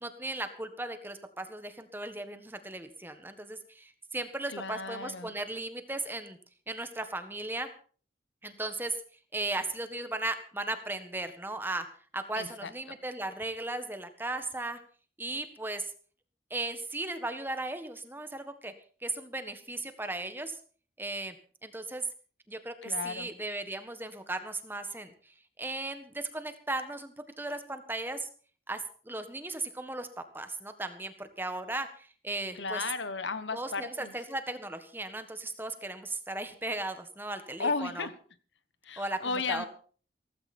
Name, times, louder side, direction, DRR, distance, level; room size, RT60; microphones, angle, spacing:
voice 1, 0.0-6.4 6.7-7.7 8.4-9.0 9.3-11.9 12.1-14.8 15.2-15.9 16.5-18.7 19.0-20.6 21.0-21.3 21.6-22.0 22.5-25.3 25.6-28.3 28.7-30.1 30.3-32.8 33.5-38.1 39.0-39.7, right 2 dB, 10° right, 8 dB, 1.6 m, -36 dB
voice 2, 4.5-5.4 12.4-13.0 22.8-23.3 32.5-34.1 37.6-38.1 38.8-39.7, left 4 dB, 80° left, 13 dB, 1.3 m, -34 dB
16.5 x 15.5 x 4.4 m, 0.42 s
head